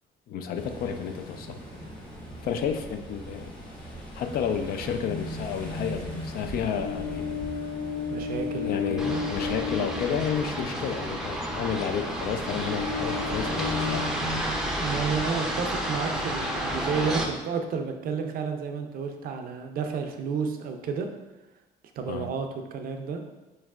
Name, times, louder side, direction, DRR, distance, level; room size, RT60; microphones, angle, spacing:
voice 1, 0.3-1.6 2.4-3.5 3.8-7.4 8.1-8.3 8.6-14.1 22.1-22.3, left 7 dB, 65° left, 7 dB, 0.4 m, -31 dB
Ocean, 0.5-14.1, left 4 dB, 25° left, 1.1 m, -36 dB
sound 1, 5.1-8.5 9.0-9.7 10.0-11.0 11.3-11.6 13.1-14.4, left 2 dB, 85° left, 1.0 m, -39 dB
voice 2, 8.1-9.2 14.8-21.1 22.0-23.2, right 5 dB, 60° right, 5 dB, 0.5 m, -31 dB
sound 2, 9.0-17.3, right 1 dB, 5° right, 0.5 m, -31 dB
4.1 x 3.1 x 2.3 m, 1.0 s
cardioid pair, 110°, 17 cm